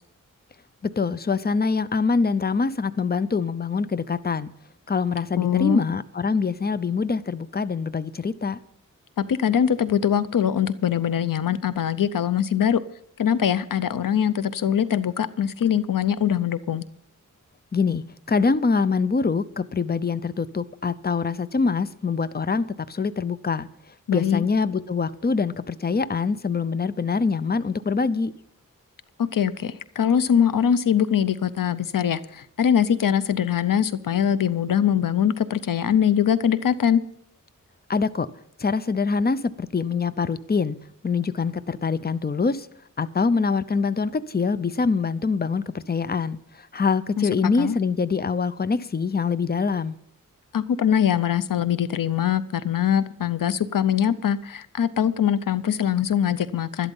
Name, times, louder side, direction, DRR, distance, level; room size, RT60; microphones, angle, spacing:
voice 1, 0.8-4.5 4.9-8.6 17.7-23.7 24.1-28.3 37.9-38.3 38.6-40.8 41.0-42.7 43.0-50.0, left 4 dB, 30° left, 15 dB, 0.7 m, -24 dB
voice 2, 5.4-5.8 9.2-12.8 13.2-16.8 24.1-24.5 29.2-37.0 47.2-47.8 50.5-56.9, left 9 dB, 90° left, 15 dB, 0.7 m, -22 dB
12.0 x 12.0 x 5.4 m, 0.70 s
wide cardioid pair, 70°, 32 cm